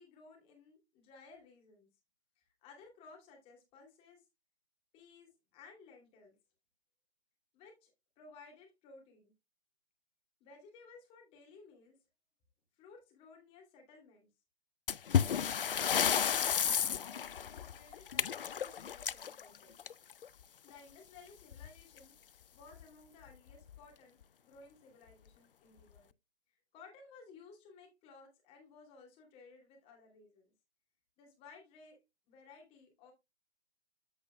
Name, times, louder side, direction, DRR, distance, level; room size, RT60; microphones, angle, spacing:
voice 1, 0.0-1.9 2.4-4.3 4.9-6.4 7.5-7.9 8.2-9.3 10.4-12.0 12.8-14.3 15.4-19.8 20.6-26.1 26.5-30.5 31.2-32.0 32.3-33.1, left 4 dB, 15° left, 2.6 m, -58 dB
sound 1, 14.9-20.3 21.5-21.7 22.0-22.1 22.7-22.8 23.5-23.8, left 8 dB, 55° left, 0.5 m, -32 dB
14.0 x 4.8 x 2.2 m
figure-of-eight pair, 135°, 33 cm